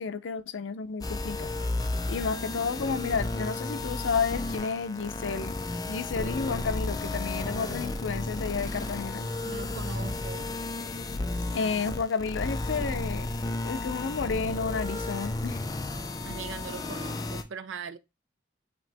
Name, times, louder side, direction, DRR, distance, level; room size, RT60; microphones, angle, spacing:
voice 1, 0.0-1.5 2.1-5.5 5.9-9.3 11.5-13.3 13.6-15.6, left 5 dB, 90° left, 0.5 m, -31 dB
sound 1, 1.0-17.4, left 2 dB, 20° left, 0.4 m, -33 dB
voice 2, 9.4-10.5 16.2-18.0, right 6 dB, 90° right, 0.5 m, -40 dB
5.3 x 2.9 x 3.3 m
head